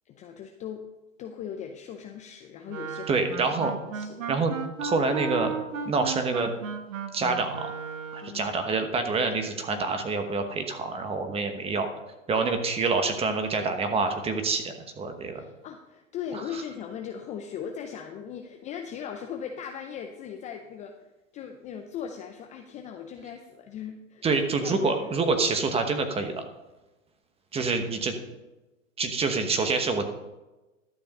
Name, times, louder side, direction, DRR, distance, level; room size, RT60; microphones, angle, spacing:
voice 1, 0.1-0.8 1.2-3.2 3.9-4.2 8.2-8.6 15.3-21.0 21.3-25.2, left 8 dB, 20° left, 4 dB, 0.5 m, -39 dB
Wind instrument woodwind instrument, 2.7-8.4, right 6 dB, 80° right, 1.3 m, -35 dB
voice 2, 3.1-3.7 4.3-4.5 4.8-5.5 5.8-6.5 7.1-7.7 8.1-11.9 12.3-15.4 24.2-26.4 27.5-28.1 29.0-30.0, right 4 dB, 15° right, 7 dB, 1.1 m, -26 dB
12.0 x 6.8 x 5.3 m, 1.1 s
hypercardioid pair, 130°, 39 cm